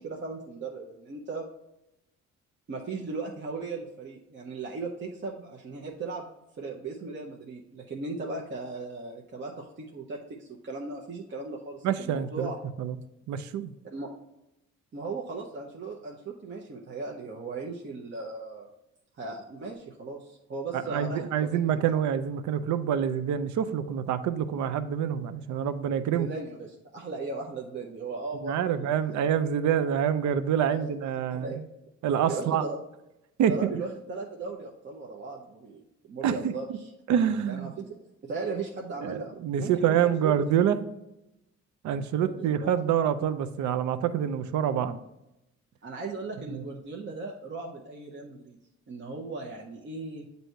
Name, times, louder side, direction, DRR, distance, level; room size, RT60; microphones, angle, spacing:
voice 1, 0.0-1.4 2.7-6.2 6.6-12.6 13.9-14.1 14.9-18.7 19.2-21.7 26.1-28.9 30.7-30.9 31.4-31.6 32.3-32.8 33.4-36.9 37.5-38.0 38.2-40.5 42.2-42.7 45.8-48.6 48.9-50.2, right 3 dB, 40° right, -1 dB, 0.8 m, -37 dB
voice 2, 11.8-12.5 12.8-13.0 13.3-13.7 20.9-26.3 28.4-31.7 32.0-32.6 33.4-33.8 36.2-36.5 37.1-37.7 39.0-40.8 41.8-45.0 46.5-46.6, right 9 dB, 70° right, 11 dB, 0.5 m, -26 dB
7.8 x 2.7 x 4.4 m, 0.88 s
cardioid pair, 90°, 30 cm